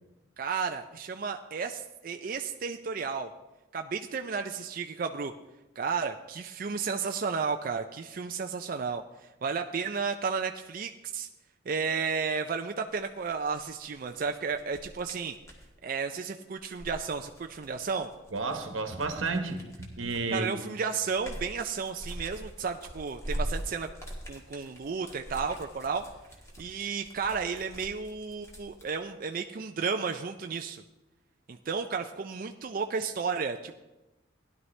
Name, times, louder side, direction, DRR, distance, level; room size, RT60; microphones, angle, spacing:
voice 1, 0.4-3.3 3.7-5.3 5.8-11.3 11.7-15.3 15.8-18.1 20.3-23.9 24.3-26.0 26.6-30.8 31.5-33.7, right 5 dB, 45° right, 5 dB, 0.4 m, -33 dB
sound 1, 12.9-15.7 16.6-20.4 20.8-28.9, equal, 15° left, 1.8 m, -42 dB
voice 2, 18.3-20.5, right 3 dB, 90° right, 6 dB, 1.3 m, -32 dB
17.0 x 11.0 x 3.2 m, 1.0 s
head